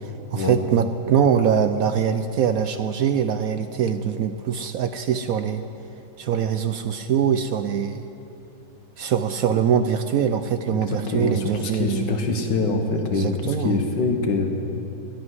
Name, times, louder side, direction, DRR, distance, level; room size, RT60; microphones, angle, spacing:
voice 1, 0.0-5.6 6.2-8.0 9.0-12.2 13.1-13.8, right 8 dB, 70° right, 9 dB, 0.9 m, -23 dB
voice 2, 10.7-14.5, left 3 dB, 80° left, 4 dB, 2.0 m, -24 dB
12.5 x 10.5 x 9.6 m, 2.7 s
omnidirectional pair, 1.9 m